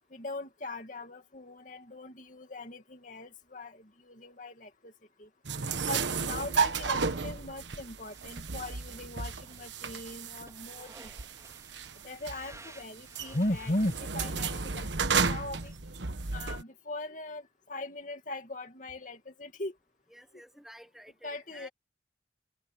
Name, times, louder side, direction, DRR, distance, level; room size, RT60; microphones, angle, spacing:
voice 1, 0.1-4.9 5.2-5.3 5.9-11.1 12.0-15.7 16.3-19.7 21.2-21.7, left 1 dB, 45° left, 2.5 m, -38 dB
sound 1, 5.4-16.6, right 5 dB, 80° right, 1.3 m, -33 dB
sound 2, 7.9-15.8, right 3 dB, 20° right, 4.1 m, -57 dB
voice 2, 20.1-21.7, equal, ahead, 1.4 m, -52 dB
head